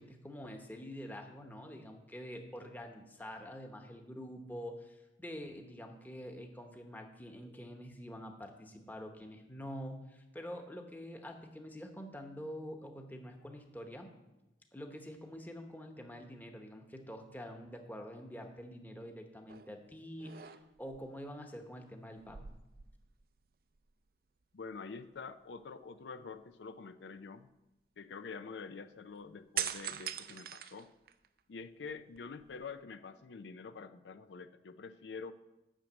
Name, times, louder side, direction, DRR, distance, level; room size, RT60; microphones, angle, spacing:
voice 1, 0.0-14.1 14.7-22.5, equal, 10° left, 4 dB, 1.0 m, -46 dB
sound 1, 19.5-19.8 20.2-21.0 22.2-23.5 23.8-23.9 29.6-31.4 31.9-32.8, right 10 dB, 55° right, 0.5 m, -42 dB
voice 2, 24.5-27.5 28.0-30.9 31.5-35.3, left 5 dB, 80° left, 11 dB, 0.5 m, -46 dB
8.9 x 6.5 x 7.9 m, 0.99 s
head